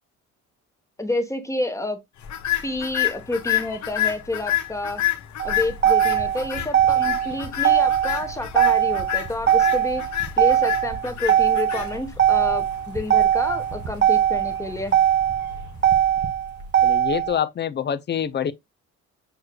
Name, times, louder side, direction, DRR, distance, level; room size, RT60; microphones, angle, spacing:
voice 1, 1.0-2.0 2.6-5.0 5.4-10.0 10.4-14.9, left 2 dB, 10° left, 1.0 m, -29 dB
sound 1, 2.2-16.6, left 13 dB, 70° left, 1.0 m, -30 dB
Motor vehicle (road), 5.4-17.4, right 10 dB, 35° right, 0.8 m, -21 dB
voice 2, 16.8-18.5, left 9 dB, 35° left, 0.5 m, -26 dB
6.5 x 3.1 x 2.2 m
cardioid pair, 90°, 30 cm